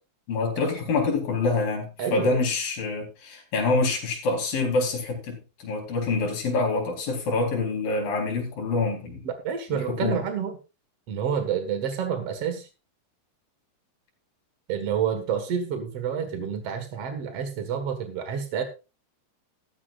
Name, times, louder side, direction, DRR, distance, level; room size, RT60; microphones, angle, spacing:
voice 1, 0.3-9.2 9.7-10.2, left 3 dB, 50° left, 0 dB, 5.3 m, -26 dB
voice 2, 2.0-2.4 9.2-10.6 11.1-12.7 14.7-18.6, right 7 dB, 65° right, 7 dB, 1.5 m, -29 dB
14.5 x 13.5 x 2.5 m, 0.29 s
omnidirectional pair, 5.4 m